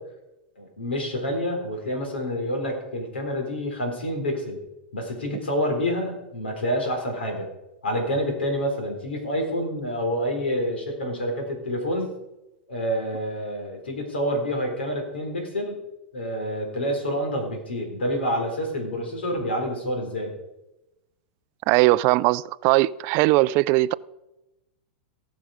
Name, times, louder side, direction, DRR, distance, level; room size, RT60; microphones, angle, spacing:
voice 1, 0.6-4.6 4.9-7.5 7.8-12.2 12.7-15.8 16.1-20.3, equal, 85° left, 4.0 m, -28 dB
voice 2, 21.7-23.9, right 19 dB, 45° right, 0.3 m, -19 dB
18.0 x 6.4 x 5.0 m
hypercardioid pair, 110°, 6 cm